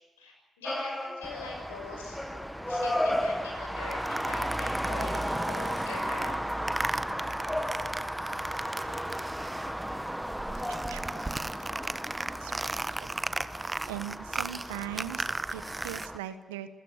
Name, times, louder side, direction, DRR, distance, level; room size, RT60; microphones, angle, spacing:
voice 1, 0.2-2.2 2.7-6.6, left 4 dB, 90° left, 1 dB, 6.5 m, -42 dB
sound 1, 0.6-1.9 2.1-3.9 7.1-8.2 10.2-11.3, left 1 dB, 10° left, 2.2 m, -34 dB
Traffic noise roadway noise, 1.2-16.2, right 1 dB, 5° right, 1.4 m, -35 dB
sound 2, 3.9-9.9 10.2-16.1, right 2 dB, 20° right, 1.0 m, -37 dB
voice 2, 10.7-11.2 12.4-12.5 12.9-13.1 13.9-16.7, right 12 dB, 85° right, 12 dB, 1.1 m, -40 dB
27.5 x 16.0 x 8.1 m, 1.1 s
hypercardioid pair, 45°, 0 cm